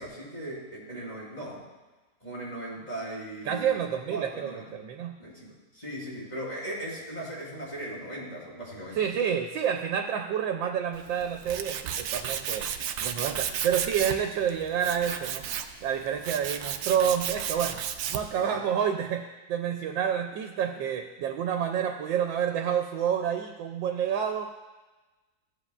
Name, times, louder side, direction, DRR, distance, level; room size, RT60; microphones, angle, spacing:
voice 1, 0.0-1.6 2.2-4.7 5.2-9.1 18.3-18.6, right 1 dB, 20° left, -6 dB, 2.9 m, -38 dB
voice 2, 3.4-5.2 8.9-12.7 13.0-15.4 15.8-17.8 18.1-24.6, right 8 dB, 90° right, 4 dB, 1.3 m, -29 dB
Tools, 10.9-18.4, right 9 dB, 70° right, 0.9 m, -34 dB
14.5 x 7.7 x 2.4 m, 1.2 s
omnidirectional pair, 2.0 m